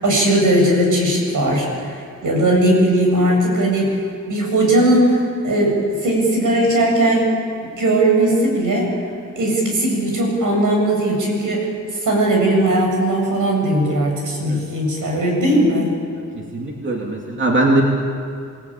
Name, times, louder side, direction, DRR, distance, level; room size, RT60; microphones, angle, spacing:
voice 1, 0.0-4.0 4.3-7.3 7.6-8.9 9.4-11.7 12.0-15.9, right 1 dB, 80° right, 0 dB, 7.8 m, -18 dB
voice 2, 16.3-17.8, right 2 dB, 40° right, -1 dB, 2.8 m, -20 dB
28.5 x 18.5 x 8.9 m, 2.4 s
wide cardioid pair, 140°, 31 cm